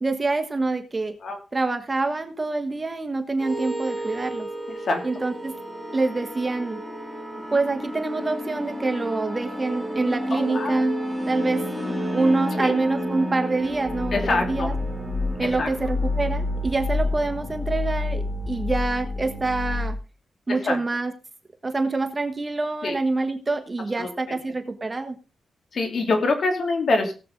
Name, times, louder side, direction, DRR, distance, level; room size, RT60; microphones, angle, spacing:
voice 1, 0.0-1.1 1.5-4.5 5.0-5.6 5.9-6.8 7.5-11.0 11.3-11.7 12.1-14.7 15.4-20.0 20.5-21.1 21.6-25.2, right 3 dB, 25° right, 5 dB, 1.3 m, -26 dB
sound 1, 3.4-20.0, left 1 dB, 15° left, 2.7 m, -29 dB
voice 2, 4.7-5.0 7.5-7.6 10.3-10.8 12.6-12.7 14.1-14.7 15.4-15.7 20.5-20.8 22.8-23.0 24.0-24.4 25.7-27.1, left 3 dB, 55° left, 4 dB, 2.7 m, -25 dB
17.5 x 7.9 x 3.9 m, 0.34 s
cardioid pair, 95°, 0 cm